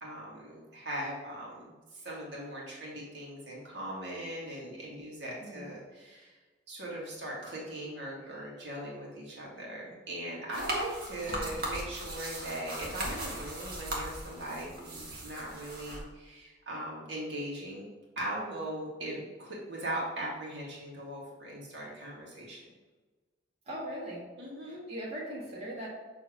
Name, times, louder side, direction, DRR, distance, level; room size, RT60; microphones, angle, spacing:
voice 1, 0.0-6.4 6.7-17.9 18.2-22.6 24.4-24.8, right 1 dB, 75° right, -4 dB, 1.9 m, -39 dB
voice 2, 5.4-5.7 11.3-11.5 23.7-24.3 24.6-25.9, right 1 dB, 35° right, -6 dB, 1.7 m, -40 dB
sound 1, 10.5-16.0, right 1 dB, 55° right, 1.5 m, -38 dB
7.0 x 3.4 x 4.8 m, 1.3 s
head